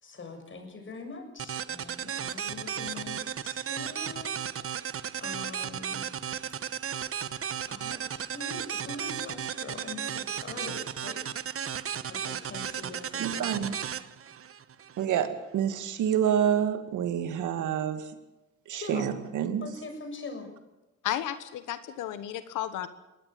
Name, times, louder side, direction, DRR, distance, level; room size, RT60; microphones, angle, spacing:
voice 1, 0.0-4.3 5.2-6.1 7.7-11.2 12.1-13.8 18.7-19.1 19.6-20.5, left 3 dB, 40° left, 5 dB, 6.7 m, -43 dB
sound 1, 1.4-15.0, right 8 dB, 50° right, 1.2 m, -35 dB
voice 2, 13.2-13.7 15.0-18.1 18.7-19.7, right 9 dB, 80° right, 9 dB, 2.4 m, -28 dB
voice 3, 21.0-22.9, left 12 dB, 90° left, 12 dB, 1.3 m, -33 dB
22.5 x 18.0 x 7.7 m, 1.0 s
cardioid pair, 90°, 30 cm